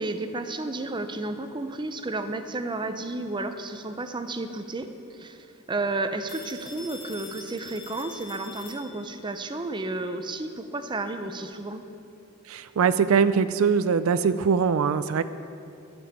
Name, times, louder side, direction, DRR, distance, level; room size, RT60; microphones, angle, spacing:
voice 1, 0.0-4.9 5.2-5.4 5.7-11.8, right 2 dB, 20° right, 8 dB, 0.6 m, -32 dB
Telephone, 6.3-9.3, left 3 dB, 25° left, 2.2 m, -44 dB
voice 2, 12.5-15.2, right 6 dB, 75° right, 13 dB, 0.4 m, -22 dB
11.0 x 7.0 x 7.4 m, 2.7 s
head